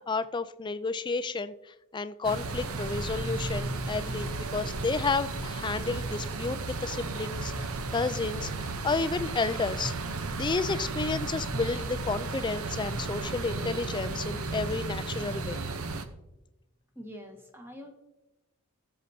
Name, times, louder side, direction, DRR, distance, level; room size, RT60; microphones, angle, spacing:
voice 1, 0.1-15.6, left 4 dB, 20° left, 12 dB, 0.4 m, -31 dB
sound 1, 2.2-16.1, right 3 dB, 80° right, 0.8 m, -34 dB
voice 2, 16.9-17.9, equal, 10° right, 3 dB, 1.3 m, -44 dB
19.5 x 6.7 x 2.8 m, 0.98 s
head